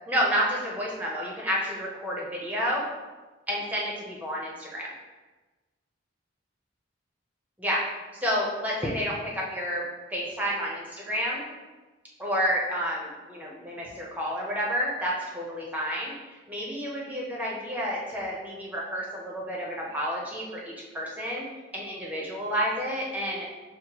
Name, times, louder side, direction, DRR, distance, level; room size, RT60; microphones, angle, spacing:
voice 1, 0.1-2.9 3.5-4.9 7.6-7.8 8.2-9.8 10.1-11.4 12.2-16.1 16.5-21.5 21.7-23.5, equal, 10° right, -4 dB, 0.8 m, -30 dB
6.3 x 2.1 x 2.9 m, 1.2 s
head